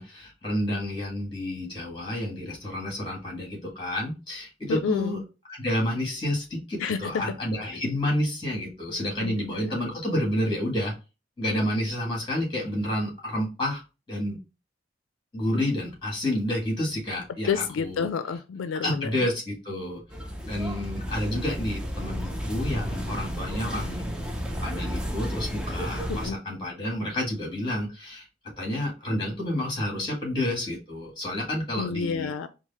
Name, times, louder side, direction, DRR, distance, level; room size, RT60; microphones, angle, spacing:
voice 1, 0.0-5.2 5.6-10.9 11.4-13.8 14.1-14.4 15.3-18.1 18.8-20.0 20.4-24.1 24.6-28.2 28.6-32.3, left 1 dB, 25° left, 1.7 m, -29 dB
voice 2, 4.7-5.2 6.8-7.0 9.2-9.6 17.5-19.1 26.1-26.4 31.8-32.5, left 6 dB, 85° left, 0.4 m, -29 dB
sound 1, 20.1-26.3, equal, 5° right, 0.5 m, -32 dB
4.7 x 2.0 x 4.1 m
head